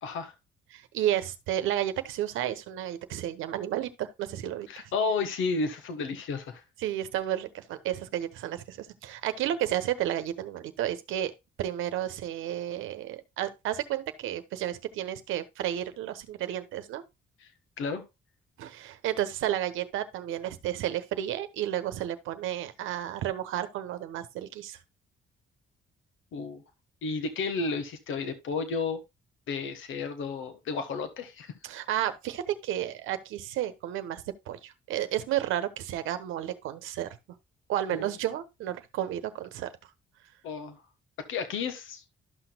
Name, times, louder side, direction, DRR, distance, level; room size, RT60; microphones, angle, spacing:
voice 1, 0.0-0.3 4.7-6.6 17.4-17.5 17.8-18.0 26.3-26.6 27.0-29.0 29.5-31.5 37.9-38.1 40.4-40.8 41.3-42.0, left 4 dB, 80° left, 1.4 m, -32 dB
voice 2, 0.7-4.9 6.8-11.3 11.6-17.0 18.6-24.8 31.6-37.1 37.7-39.7, right 12 dB, 90° right, 1.0 m, -32 dB
12.5 x 6.1 x 2.2 m
cardioid pair, 90°, 20 cm